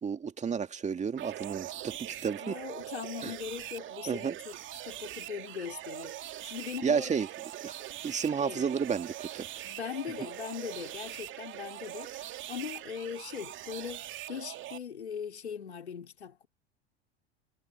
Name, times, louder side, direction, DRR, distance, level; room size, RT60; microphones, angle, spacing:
voice 1, 0.0-2.6 3.2-3.3 4.1-4.4 6.8-7.3 7.6-7.7 8.0-9.5, right 6 dB, 20° right, 2.3 m, -31 dB
sound 1, 1.2-14.8, right 13 dB, 35° right, 2.4 m, -42 dB
voice 2, 2.4-4.6 4.8-7.1 8.4-8.6 9.6-16.5, left 7 dB, 80° left, 4.0 m, -40 dB
figure-of-eight pair, 85°, 32 cm